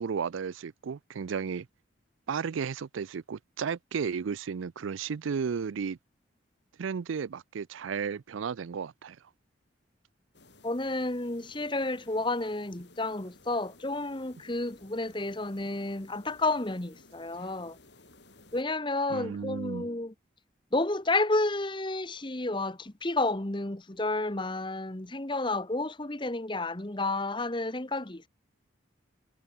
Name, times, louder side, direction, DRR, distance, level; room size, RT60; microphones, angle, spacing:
voice 1, 0.0-1.7 2.3-6.0 6.8-9.2 19.1-19.9, right 6 dB, 85° right, 0.4 m, -33 dB
sound 1, 10.3-18.6, left 2 dB, 60° left, 4.8 m, -57 dB
voice 2, 10.6-17.8 18.5-20.1 20.7-28.3, left 2 dB, 25° left, 1.2 m, -31 dB
head